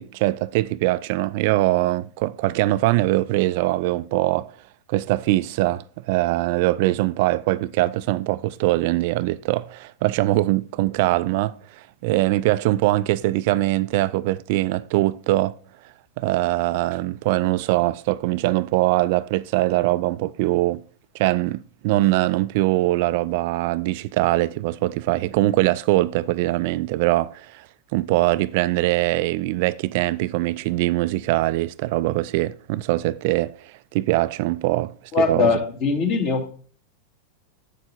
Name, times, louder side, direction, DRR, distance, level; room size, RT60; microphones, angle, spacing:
voice 1, 0.0-4.6 4.9-15.6 16.2-20.8 21.1-27.7 27.9-34.9 35.2-35.5, right 17 dB, 50° right, 0.3 m, -22 dB
voice 2, 35.1-36.5, left 4 dB, 40° left, 2.2 m, -21 dB
7.8 x 7.7 x 4.3 m
figure-of-eight pair, 90°, 0 cm